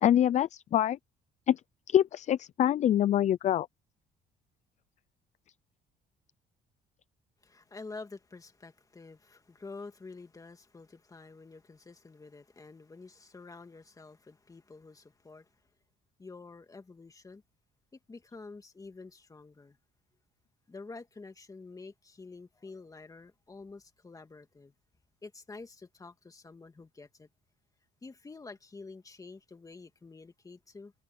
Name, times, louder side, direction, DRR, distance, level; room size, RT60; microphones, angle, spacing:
voice 1, 0.0-1.0 1.5-1.6 1.9-3.7, left 11 dB, 45° left, 0.4 m, -25 dB
voice 2, 7.4-15.5 16.2-17.4 17.9-19.8 20.7-24.7 25.2-27.3 28.0-30.9, left 3 dB, 20° left, 2.6 m, -48 dB
cardioid pair, 110°, 17 cm